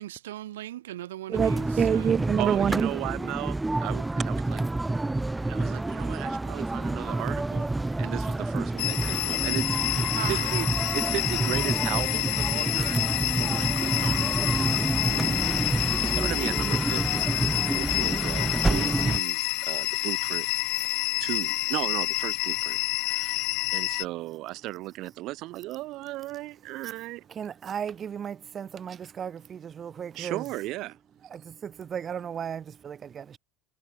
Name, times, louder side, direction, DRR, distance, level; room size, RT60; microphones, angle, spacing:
voice 1, 0.0-2.1 10.0-10.8, right 14 dB, 85° right, 4.2 m, -38 dB
sound 1, 1.3-19.2, right 2 dB, 10° right, 0.9 m, -28 dB
voice 2, 1.3-2.9 27.4-30.4 31.3-33.4, right 8 dB, 35° right, 0.6 m, -30 dB
voice 3, 2.4-4.6 5.4-7.6 8.0-10.7 10.9-13.1 13.4-15.6 16.0-17.3 17.7-20.5 21.2-22.8 23.0-23.4 23.7-27.3 30.2-31.0, right 18 dB, 55° right, 1.9 m, -36 dB
sound 2, 8.8-24.1, left 27 dB, 65° left, 0.5 m, -28 dB
hypercardioid pair, 95°, 0 cm